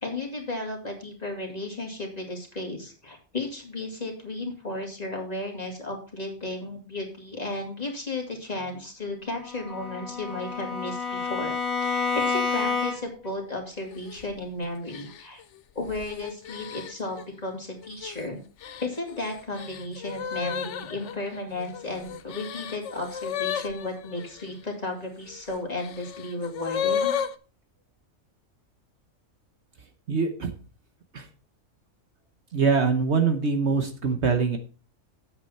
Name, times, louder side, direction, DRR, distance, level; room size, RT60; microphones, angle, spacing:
voice 1, 0.0-11.6 11.8-15.4 15.7-18.4 18.8-27.2, left 2 dB, 30° left, 1 dB, 2.6 m, -34 dB
Bowed string instrument, 9.5-13.3, left 4 dB, 80° left, 1.7 m, -29 dB
sound 1, 13.9-14.3 14.9-17.2 17.8-18.2 18.6-24.5 25.3-27.3, left 8 dB, 65° left, 1.0 m, -33 dB
voice 2, 30.1-30.5 31.1-31.3 32.5-34.6, right 5 dB, 55° right, 6 dB, 1.3 m, -23 dB
9.6 x 8.1 x 4.3 m, 0.36 s
omnidirectional pair, 1.4 m